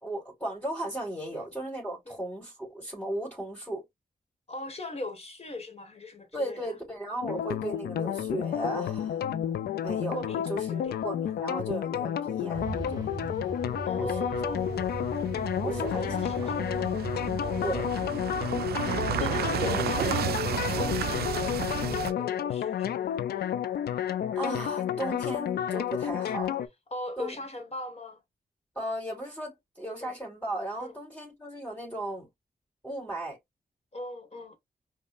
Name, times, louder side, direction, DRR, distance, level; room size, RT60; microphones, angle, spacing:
voice 1, 0.0-3.8 6.3-9.3 9.8-13.1 14.0-14.1 15.6-16.1 16.4-16.6 17.6-17.9 19.6-19.8 24.3-26.5 27.2-27.3 28.7-32.3 32.8-33.4, right 1 dB, 10° left, 2.5 m, -36 dB
voice 2, 4.5-6.7 10.1-11.0 13.9-15.0 15.6-17.0 17.4-18.2 19.0-20.3 20.7-23.2 26.3-26.4 26.9-28.2 30.0-30.2 30.8-31.0 33.9-34.6, left 2 dB, 40° left, 1.4 m, -39 dB
sound 1, 7.2-26.7, left 10 dB, 80° left, 0.4 m, -31 dB
Truck, 12.5-18.2, right 4 dB, 25° right, 1.5 m, -39 dB
sound 2, 14.4-22.1, right 10 dB, 80° right, 0.4 m, -33 dB
5.1 x 2.2 x 2.4 m
cardioid pair, 50°, 16 cm